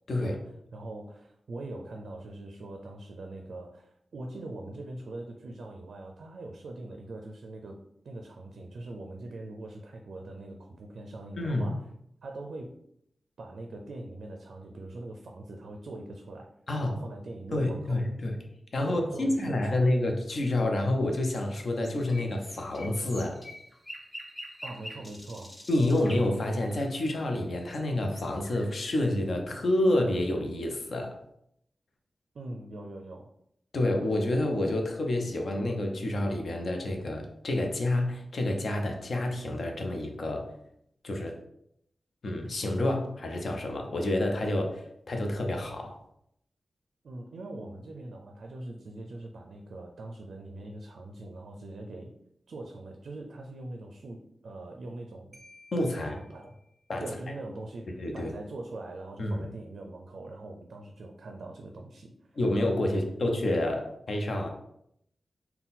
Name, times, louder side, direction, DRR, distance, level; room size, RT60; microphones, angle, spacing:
voice 1, 0.2-11.9 12.2-12.8 13.4-16.5 16.8-18.0 18.8-19.9 24.6-25.5 32.3-33.3 47.0-52.1 52.5-55.4 55.9-56.5 57.0-62.4 62.9-63.0, right 2 dB, 75° right, 3 dB, 0.4 m, -42 dB
voice 2, 11.4-11.8 16.7-17.0 17.5-18.4 18.7-23.4 25.7-31.2 33.7-40.5 41.0-41.4 42.2-46.0 55.7-56.2 56.9-57.2 58.0-58.3 59.2-59.5 62.4-64.5, left 1 dB, 55° left, 3 dB, 0.6 m, -28 dB
sound 1, 21.1-27.8 28.1-29.1, equal, 15° left, 0.6 m, -46 dB
Marimba xylophone, 55.3-57.1, left 2 dB, 25° right, 0.7 m, -57 dB
3.8 x 2.2 x 4.1 m, 0.75 s
wide cardioid pair, 145°, 0 cm